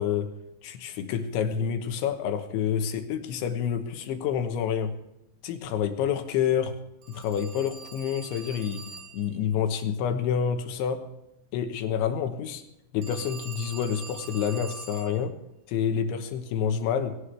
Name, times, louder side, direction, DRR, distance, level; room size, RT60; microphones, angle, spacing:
voice 1, 0.0-5.0 5.4-6.8 7.1-11.1 11.5-12.6 12.9-15.4 15.7-17.2, left 8 dB, 75° left, 7 dB, 3.4 m, -28 dB
Telephone, 7.0-9.3 13.0-15.2, right 4 dB, 60° right, 4.3 m, -43 dB
20.0 x 17.5 x 3.3 m, 0.88 s
omnidirectional pair, 5.6 m